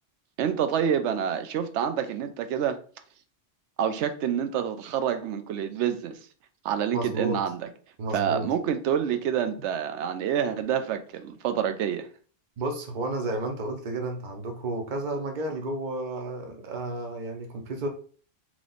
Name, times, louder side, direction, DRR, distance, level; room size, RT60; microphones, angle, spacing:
voice 1, 0.4-2.8 3.8-6.2 6.6-7.7 8.1-12.1, right 8 dB, 85° right, 0.9 m, -27 dB
voice 2, 6.9-7.4 8.0-8.5 12.6-17.9, right 2 dB, 45° right, 0.9 m, -32 dB
3.1 x 3.0 x 3.9 m
omnidirectional pair, 1.2 m